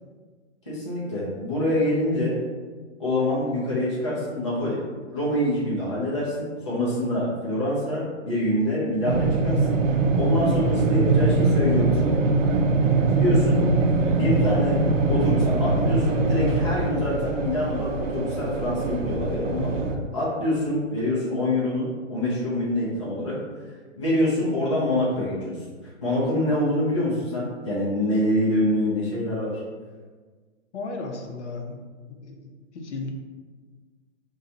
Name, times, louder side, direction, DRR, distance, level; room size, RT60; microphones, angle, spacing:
voice 1, 0.7-2.4 3.0-4.8 5.1-9.8 10.2-12.2 13.1-13.7 14.1-14.8 15.1-23.4 24.0-25.6 25.8-29.6, left 1 dB, 25° left, -8 dB, 0.4 m, -25 dB
sound 1, 9.0-20.0, right 3 dB, 85° right, 0.6 m, -22 dB
voice 2, 30.7-31.8 32.1-33.1, left 3 dB, 65° left, 2 dB, 0.7 m, -35 dB
2.6 x 2.3 x 4.0 m, 1.5 s
hypercardioid pair, 175°, 37 cm